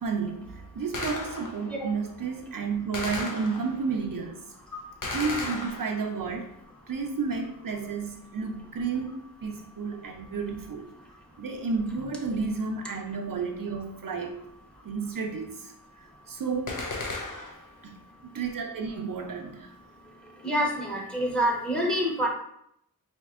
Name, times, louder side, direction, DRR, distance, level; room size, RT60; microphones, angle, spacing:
voice 1, 0.0-4.4 5.1-6.6 6.9-10.9 11.4-14.3 14.8-15.7 16.3-16.9 17.8-18.0 18.3-19.7, right 5 dB, 70° right, 3 dB, 0.5 m, -31 dB
Gunshot gunfire, 0.9-1.8 2.9-3.9 5.0-6.3 16.7-17.7, left 2 dB, 60° left, 0.6 m, -35 dB
voice 2, 20.4-22.3, equal, 5° left, -2 dB, 0.9 m, -26 dB
4.2 x 2.9 x 2.4 m, 0.73 s
wide cardioid pair, 65°, 35 cm